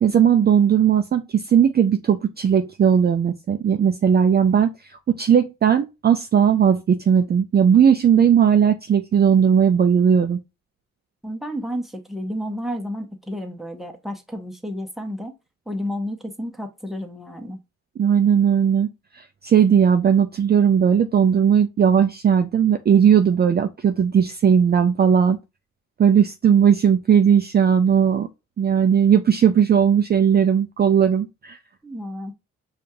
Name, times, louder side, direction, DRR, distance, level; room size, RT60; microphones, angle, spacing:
voice 1, 0.0-10.4 18.0-18.9 19.1-25.4 26.0-28.3 28.6-31.6, right 8 dB, 35° right, 0.4 m, -17 dB
voice 2, 11.2-15.3 15.7-17.6 31.8-32.3, equal, ahead, 0.8 m, -31 dB
5.0 x 2.4 x 2.7 m
cardioid pair, 75°, 29 cm